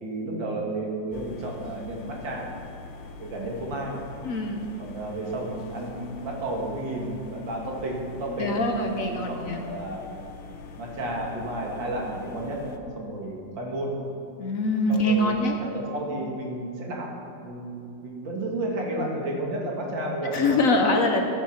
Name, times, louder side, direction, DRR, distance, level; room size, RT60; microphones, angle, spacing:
voice 1, 0.0-2.5 3.2-4.0 4.8-8.6 8.9-10.0 10.8-13.9 14.9-17.1 17.4-20.7, right 1 dB, 90° right, -1 dB, 2.5 m, -32 dB
sound 1, 1.1-12.8, left 4 dB, 80° left, 1.5 m, -43 dB
voice 2, 4.2-4.6 8.4-9.6 14.4-15.5 20.3-21.3, left 2 dB, 55° left, 3 dB, 1.1 m, -23 dB
13.5 x 7.3 x 5.8 m, 2.7 s
omnidirectional pair, 2.0 m